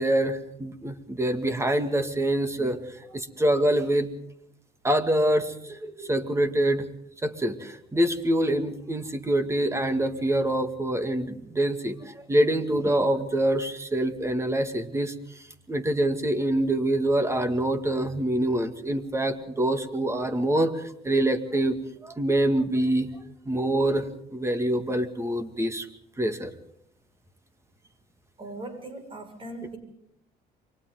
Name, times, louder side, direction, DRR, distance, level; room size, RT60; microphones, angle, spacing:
voice 1, 0.0-4.1 4.8-6.8 7.2-23.1 23.5-25.9 26.2-26.5, right 1 dB, 15° right, 8 dB, 2.2 m, -25 dB
voice 2, 28.4-29.8, right 2 dB, 30° right, 6 dB, 5.9 m, -39 dB
29.0 x 24.0 x 3.9 m, 0.75 s
cardioid pair, 110°, 17 cm